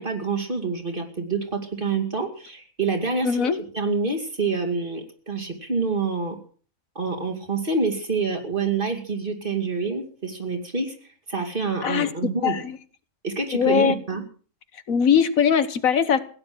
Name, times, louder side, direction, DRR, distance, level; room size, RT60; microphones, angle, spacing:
voice 1, 0.0-6.4 6.9-11.0 11.3-12.6 13.2-14.2, right 4 dB, 40° right, 4 dB, 2.8 m, -27 dB
voice 2, 3.2-3.6 11.8-12.8 13.5-13.9 14.9-16.2, left 7 dB, 75° left, 13 dB, 1.5 m, -21 dB
16.5 x 9.7 x 7.8 m, 0.43 s
omnidirectional pair, 1.4 m